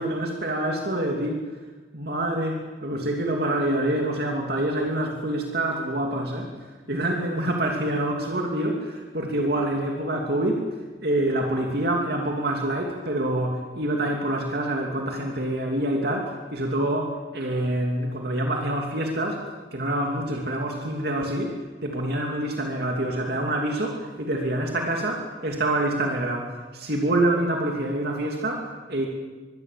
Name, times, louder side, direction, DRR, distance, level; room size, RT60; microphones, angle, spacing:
voice 1, 0.0-1.5 1.9-10.7 11.0-19.4 19.7-21.6 21.8-29.1, right 1 dB, 55° right, 1 dB, 2.9 m, -26 dB
24.5 x 22.5 x 7.6 m, 1.3 s
head